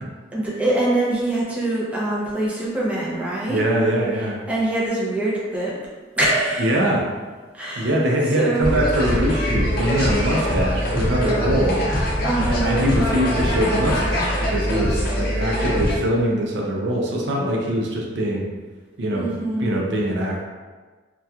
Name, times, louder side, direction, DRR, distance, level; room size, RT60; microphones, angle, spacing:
voice 1, 0.3-3.6 4.1-5.7 6.2-6.8 7.5-7.9 8.4-8.8 12.2-13.0 19.1-19.8, right 2 dB, 5° right, -7 dB, 0.5 m, -24 dB
voice 2, 3.5-4.4 6.6-7.0 7.8-11.8 12.5-18.5 19.0-19.3 19.6-20.4, right 1 dB, 60° right, -2 dB, 0.4 m, -22 dB
sound 1, 8.6-16.0, equal, 50° left, 0.6 m, -23 dB
2.8 x 2.2 x 2.3 m, 1.4 s
head